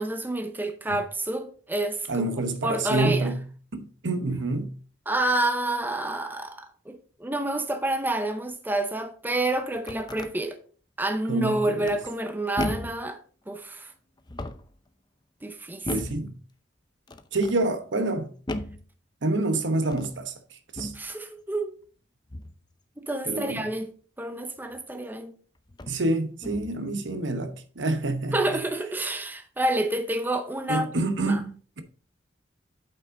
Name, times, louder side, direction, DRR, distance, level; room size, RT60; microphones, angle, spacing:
voice 1, 0.0-2.3 2.6-3.3 5.1-10.6 11.0-13.2 13.5-13.9 15.4-15.9 20.9-21.8 23.0-23.9 24.2-25.3 28.3-30.9 31.2-31.4, right 1 dB, 10° right, 0.7 m, -28 dB
voice 2, 2.1-3.4 3.7-4.7 11.3-11.9 15.9-16.4 17.3-18.3 19.2-20.9 23.2-23.6 25.9-28.6 30.7-31.8, right 2 dB, 75° right, 1.0 m, -27 dB
sound 1, 9.6-10.3 11.8-12.2 12.6-13.1 14.2-14.8 15.8-16.3 17.1-17.6 18.5-18.9 19.8-20.2 20.7-21.1 22.3-22.6 24.7-24.8 25.7-26.0 26.4-26.8, left 1 dB, 25° left, 0.5 m, -35 dB
8.8 x 5.4 x 3.8 m
head